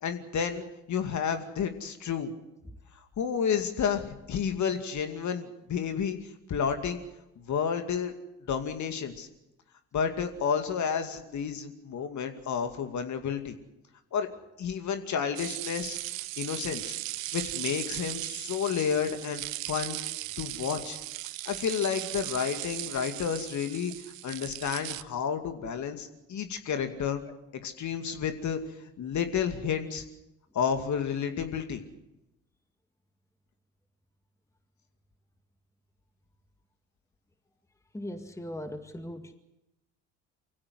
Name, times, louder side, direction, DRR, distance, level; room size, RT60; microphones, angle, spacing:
voice 1, 0.0-2.3 3.2-6.2 6.5-7.0 7.4-8.1 8.5-9.3 9.9-13.6 14.1-14.3 14.6-16.9 17.3-20.0 20.4-21.0 21.5-23.9 24.2-27.2 27.6-28.6 29.0-30.0 30.5-31.8, left 7 dB, 45° left, 7 dB, 2.4 m, -31 dB
sound 1, 15.4-25.0, right 17 dB, 80° right, 0.7 m, -37 dB
voice 2, 37.9-39.3, left 1 dB, 5° left, 8 dB, 2.0 m, -39 dB
24.5 x 16.0 x 8.0 m, 0.93 s
hypercardioid pair, 60°, 40 cm